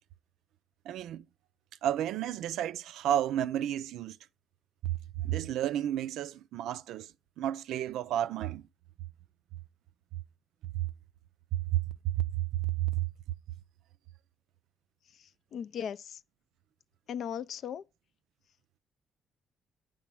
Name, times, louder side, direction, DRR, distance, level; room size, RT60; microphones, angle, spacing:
voice 1, 0.9-1.3 1.8-4.2 4.8-5.0 5.2-7.1 7.4-8.6 10.7-10.9 11.5-13.1, right 12 dB, 85° right, 0.3 m, -31 dB
voice 2, 15.2-16.2 17.1-17.8, left 8 dB, 70° left, 0.3 m, -38 dB
9.0 x 3.8 x 6.0 m
supercardioid pair, 65°, 0 cm